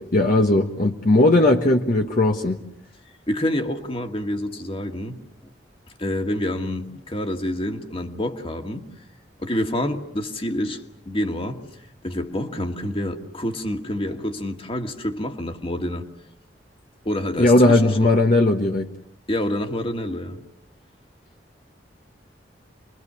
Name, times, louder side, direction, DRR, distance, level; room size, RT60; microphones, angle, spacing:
voice 1, 0.0-2.6 17.4-18.9, left 2 dB, 50° left, 3 dB, 1.3 m, -18 dB
voice 2, 3.3-5.2 6.0-8.8 9.4-11.6 12.0-16.0 17.1-18.1 19.3-20.4, left 1 dB, 30° left, 5 dB, 2.0 m, -27 dB
29.5 x 23.0 x 6.9 m, 0.75 s
head